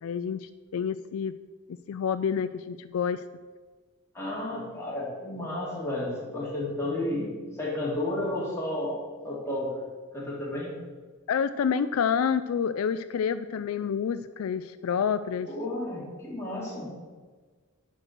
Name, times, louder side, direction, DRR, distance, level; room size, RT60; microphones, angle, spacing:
voice 1, 0.0-1.3 1.9-3.2 11.3-15.5, left 7 dB, 75° left, 12 dB, 0.3 m, -28 dB
voice 2, 4.1-9.0 9.2-9.7 10.1-10.8 15.5-16.9, left 1 dB, 10° left, -6 dB, 2.8 m, -32 dB
10.5 x 4.6 x 6.5 m, 1.4 s
head